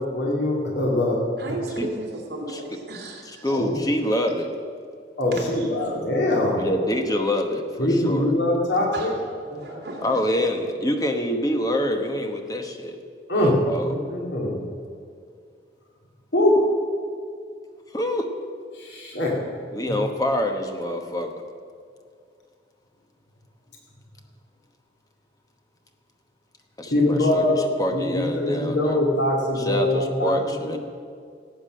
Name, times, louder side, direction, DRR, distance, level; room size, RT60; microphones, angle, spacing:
voice 1, 0.0-1.2 3.5-3.9 5.2-6.6 7.8-9.1 9.5-9.8 13.3-13.5 14.1-14.6 16.3-16.6 18.7-19.3 19.9-20.0 26.9-27.6 27.9-30.8, left 1 dB, 70° left, -2 dB, 2.4 m, -23 dB
voice 2, 1.4-3.5 5.3-5.9 8.9-9.1 9.6-10.2, right 2 dB, 60° right, -1 dB, 2.8 m, -35 dB
voice 3, 2.5-2.8 3.4-4.5 6.6-8.3 10.0-13.0 13.3-13.9 17.9-18.3 19.7-21.3 26.8-29.0 29.6-30.8, equal, 20° left, 5 dB, 1.1 m, -26 dB
17.5 x 8.3 x 6.4 m, 2.3 s
head